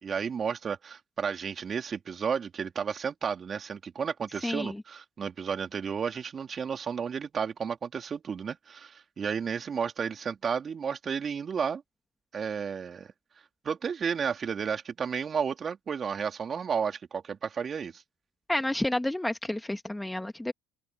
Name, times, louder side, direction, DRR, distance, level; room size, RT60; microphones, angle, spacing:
voice 1, 0.0-11.8 12.3-13.1 13.6-18.0, right 6 dB, 40° right, 3.5 m, -32 dB
voice 2, 4.4-4.7 18.5-20.5, left 1 dB, 10° left, 1.8 m, -30 dB
supercardioid pair, 80°, 0 cm